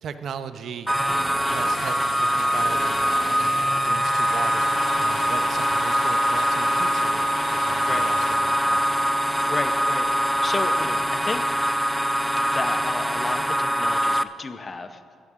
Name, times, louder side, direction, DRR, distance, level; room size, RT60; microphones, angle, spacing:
voice 1, 0.0-1.0 1.5-3.0 3.3-3.5 3.8-8.9, right 7 dB, 65° right, 10 dB, 0.7 m, -37 dB
sound 1, 0.9-14.2, equal, 10° right, 0.4 m, -23 dB
sound 2, 1.5-8.3, left 5 dB, 85° left, 1.7 m, -38 dB
voice 2, 9.2-11.6 12.4-15.0, left 3 dB, 30° left, 7 dB, 0.7 m, -32 dB
17.5 x 12.0 x 3.7 m, 2.1 s
cardioid pair, 90°, 0 cm